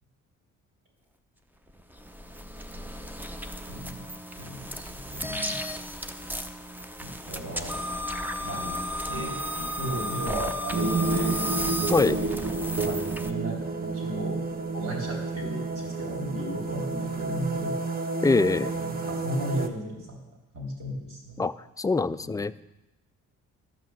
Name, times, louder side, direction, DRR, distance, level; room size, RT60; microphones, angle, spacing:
sound 1, 1.7-13.3, equal, 5° right, 0.7 m, -34 dB
voice 1, 3.7-4.1 4.4-5.5 7.0-7.7 8.4-8.8 9.1-11.3 12.0-12.4 12.8-14.4 14.7-17.8 18.5-20.2 20.5-21.4 22.2-22.4, right 1 dB, 65° right, -2 dB, 3.9 m, -35 dB
sound 2, 10.7-19.7, right 3 dB, 30° right, 1.0 m, -30 dB
voice 2, 18.2-18.7 21.4-22.5, left 3 dB, 10° left, 13 dB, 0.3 m, -24 dB
12.5 x 5.7 x 7.6 m, 0.98 s
cardioid pair, 90°, 30 cm